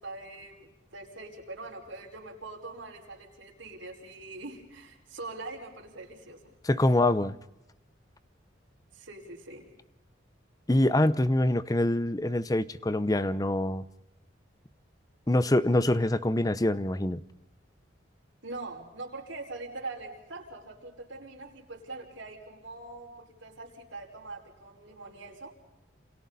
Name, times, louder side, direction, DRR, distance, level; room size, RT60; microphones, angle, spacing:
voice 1, 0.0-6.5 8.9-9.7 18.4-25.5, right 2 dB, 80° right, 0 dB, 5.3 m, -43 dB
voice 2, 6.6-7.4 10.7-13.8 15.3-17.2, left 1 dB, 20° left, 15 dB, 0.7 m, -25 dB
29.0 x 27.5 x 4.1 m, 0.92 s
head